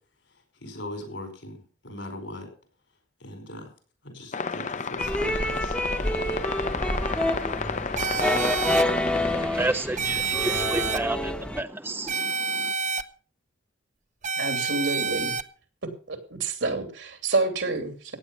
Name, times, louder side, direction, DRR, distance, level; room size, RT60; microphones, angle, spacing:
voice 1, 0.6-2.5 3.2-3.7 4.0-5.8, left 1 dB, 75° left, 6 dB, 5.0 m, -40 dB
sound 1, 4.3-9.5, left 4 dB, 40° left, 0.8 m, -32 dB
sound 2, 5.0-11.6, left 1 dB, 5° left, 1.0 m, -28 dB
sound 3, 8.0-8.8 10.0-11.0 12.1-13.0 14.2-15.4, right 5 dB, 40° right, 0.8 m, -28 dB
voice 2, 8.4-12.7, right 2 dB, 10° right, 10 dB, 0.6 m, -32 dB
voice 3, 14.4-15.3 16.1-18.2, right 3 dB, 75° right, 6 dB, 3.0 m, -28 dB
15.5 x 9.5 x 5.7 m, 0.40 s
head